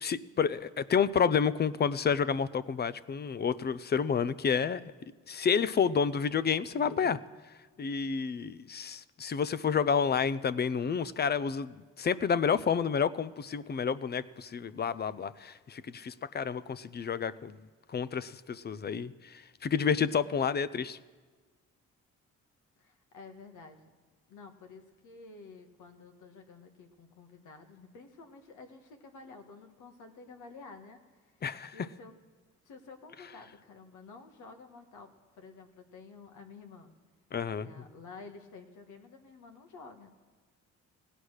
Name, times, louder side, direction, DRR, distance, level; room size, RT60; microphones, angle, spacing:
voice 1, 0.0-4.9 5.3-7.2 7.8-17.6 17.9-21.0 31.4-31.7 37.3-37.7, left 6 dB, 35° left, 17 dB, 0.5 m, -30 dB
voice 2, 22.8-23.8 24.3-31.4 31.7-32.1 32.6-36.9 37.6-40.1, left 4 dB, 80° left, 6 dB, 1.5 m, -51 dB
16.5 x 9.9 x 6.4 m, 1.4 s
cardioid pair, 90°, 30 cm